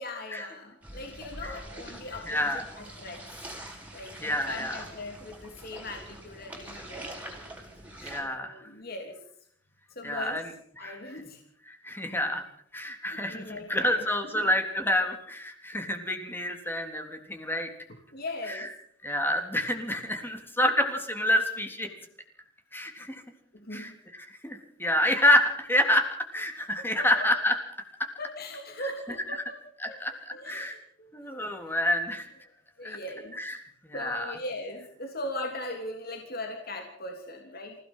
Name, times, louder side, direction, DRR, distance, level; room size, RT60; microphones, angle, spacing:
voice 1, 0.0-3.2 3.9-7.4 8.2-9.2 9.9-10.4 10.8-11.4 12.1-12.2 13.1-14.1 14.3-14.5 18.1-18.7 23.5-24.0 27.0-27.3 28.2-29.6 29.9-30.0 30.3-31.1 32.8-33.4 33.9-37.8, left 1 dB, 50° left, 3 dB, 3.2 m, -39 dB
sound 1, 0.8-8.2, right 1 dB, 10° right, 5.5 m, -44 dB
voice 2, 2.3-2.6 4.2-4.8 8.0-8.6 10.0-10.4 10.8-11.0 11.7-12.4 12.7-17.7 18.5-18.7 19.0-21.9 22.7-23.2 23.7-23.9 24.4-27.6 28.0-28.1 29.8-30.1 30.4-30.8 31.1-32.3 32.8-33.0 33.4-33.6 33.8-34.3, left 1 dB, 10° left, 5 dB, 3.5 m, -28 dB
28.0 x 17.0 x 5.7 m, 0.65 s
head